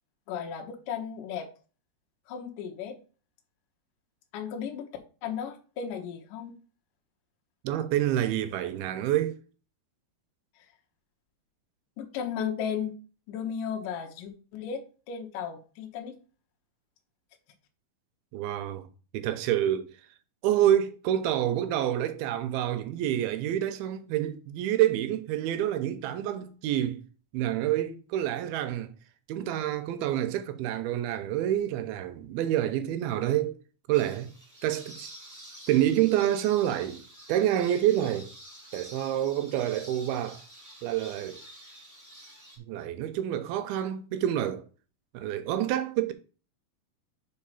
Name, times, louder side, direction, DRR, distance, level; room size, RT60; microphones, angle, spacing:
voice 1, 0.3-1.5 2.3-3.0 4.3-4.9 5.2-6.5 12.0-13.0 13.3-16.2, left 7 dB, 70° left, 2.4 m, -35 dB
voice 2, 7.6-9.4 18.3-18.9 19.1-19.9 20.4-27.0 27.3-28.9 29.3-33.6 33.9-34.3 34.6-35.1 35.7-37.0 37.3-38.3 38.7-40.4 40.8-41.4 42.6-44.7 45.1-46.1, right 12 dB, 80° right, 2.5 m, -27 dB
sound 1, 33.9-42.6, right 1 dB, 25° right, 0.4 m, -48 dB
5.4 x 4.7 x 5.5 m
omnidirectional pair, 4.5 m